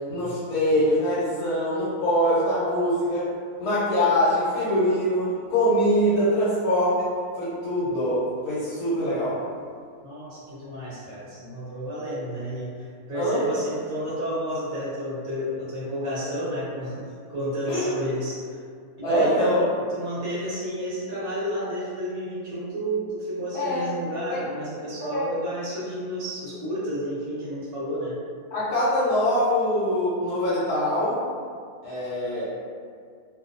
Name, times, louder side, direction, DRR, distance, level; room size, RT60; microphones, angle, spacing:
voice 1, 0.1-3.3 3.6-7.1 7.4-9.4 13.1-13.4 17.7-17.9 19.0-19.6 23.5-23.8 24.3-24.4 25.1-25.3 28.5-31.2 31.8-32.4, equal, 80° left, -11 dB, 1.2 m, -23 dB
voice 2, 10.0-18.6 19.0-28.2, equal, 45° right, -9 dB, 0.9 m, -31 dB
2.6 x 2.3 x 2.5 m, 2.1 s
omnidirectional pair, 1.6 m